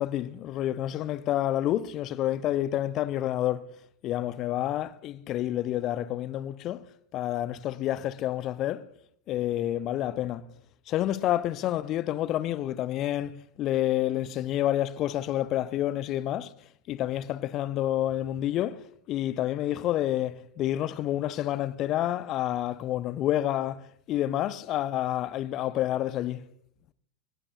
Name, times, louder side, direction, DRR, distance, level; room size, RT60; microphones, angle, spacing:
voice 1, 0.0-3.6 4.0-6.8 7.1-8.8 9.3-10.5 10.9-16.5 16.9-26.5, left 13 dB, 35° left, 0.7 m, -29 dB
29.0 x 16.0 x 2.5 m
figure-of-eight pair, 90°, 0 cm